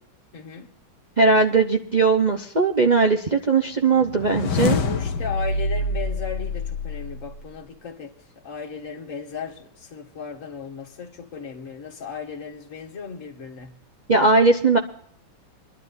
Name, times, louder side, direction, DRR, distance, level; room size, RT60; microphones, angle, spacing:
voice 1, 0.3-0.7 4.8-8.1 8.4-13.7, left 5 dB, 40° left, 2.2 m, -36 dB
voice 2, 1.2-4.8 14.1-14.8, right 4 dB, 55° right, 0.4 m, -19 dB
sound 1, 4.0-7.3, left 3 dB, 60° left, 1.5 m, -26 dB
24.0 x 12.0 x 2.7 m
omnidirectional pair, 2.2 m